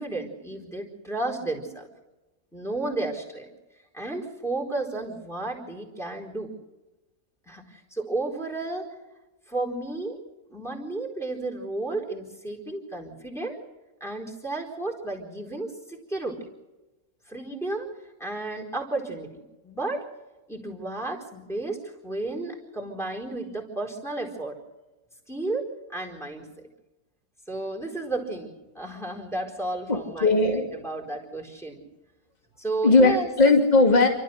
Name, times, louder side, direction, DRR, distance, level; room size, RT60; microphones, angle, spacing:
voice 1, 0.0-1.9 2.5-3.5 3.9-6.5 7.5-8.9 9.5-10.2 10.5-13.6 14.0-16.4 17.3-17.9 18.2-20.1 20.5-24.6 25.3-26.5 27.5-30.4 30.8-31.8 32.6-33.3, right 2 dB, ahead, 0 dB, 4.3 m, -32 dB
voice 2, 29.9-30.7 32.8-34.1, left 3 dB, 25° left, 2 dB, 2.7 m, -18 dB
29.5 x 13.5 x 6.6 m, 1.1 s
omnidirectional pair, 1.6 m